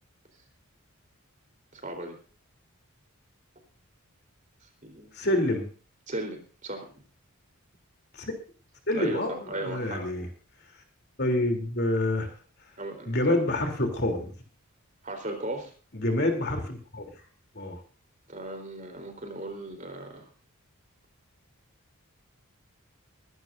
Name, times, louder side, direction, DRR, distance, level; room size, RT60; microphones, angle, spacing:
voice 1, 1.7-2.2 4.8-5.1 6.1-6.9 8.9-10.1 12.8-13.5 15.0-15.7 18.3-20.3, right 1 dB, 35° right, 4 dB, 4.0 m, -36 dB
voice 2, 5.1-5.6 8.1-8.3 8.9-10.3 11.2-12.3 13.0-14.3 15.9-17.0 17.5-17.8, left 1 dB, 50° left, 4 dB, 3.3 m, -27 dB
23.0 x 12.0 x 2.7 m, 0.38 s
head